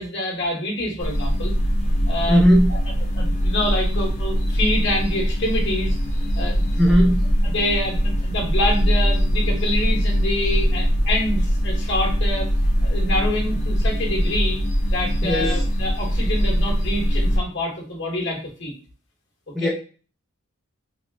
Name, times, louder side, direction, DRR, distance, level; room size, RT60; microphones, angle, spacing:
voice 1, 0.0-1.5 2.1-2.4 2.7-2.8 3.1-5.9 6.4-7.0 7.4-12.5 12.8-14.6 14.9-18.7 19.6-19.7, left 1 dB, 55° left, -1 dB, 1.1 m, -26 dB
sound 1, 1.0-17.4, equal, 35° left, 0.6 m, -22 dB
voice 2, 2.3-2.7 6.8-7.2 15.2-15.6 19.5-19.7, equal, ahead, -2 dB, 0.7 m, -17 dB
3.5 x 2.7 x 2.6 m, 0.37 s
head